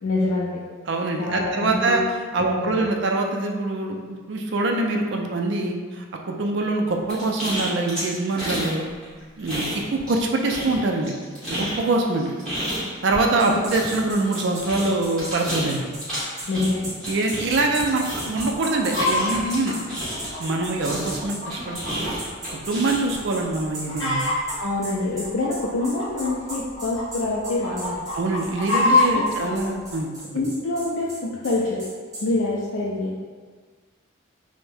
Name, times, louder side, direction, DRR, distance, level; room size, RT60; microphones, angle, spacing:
voice 1, 0.0-0.6 1.2-2.0 2.4-2.8 13.5-13.6 16.5-16.8 24.6-28.0 29.0-29.6 30.3-31.8 32.2-33.2, left 2 dB, 70° left, -5 dB, 0.4 m, -26 dB
voice 2, 0.9-2.0 2.3-8.8 9.4-11.1 11.5-12.3 13.0-15.9 17.1-19.7 20.4-22.3 22.7-24.3 28.1-30.4, right 2 dB, 60° right, 2 dB, 0.4 m, -24 dB
sound 1, 7.1-8.7 9.0-10.2 10.5-20.5 20.8-23.2, equal, 5° left, 1.2 m, -31 dB
sound 2, 13.4-21.4 21.7-21.9 22.2-32.3, right 1 dB, 15° right, 0.9 m, -36 dB
Chicken rooster, 18.4-19.3 19.9-22.1 22.5-22.6 23.1-23.4 23.6-24.5 25.2-27.0 27.4-29.2 29.9-30.0, left 3 dB, 25° left, 1.3 m, -24 dB
3.4 x 2.1 x 3.3 m, 1.5 s
head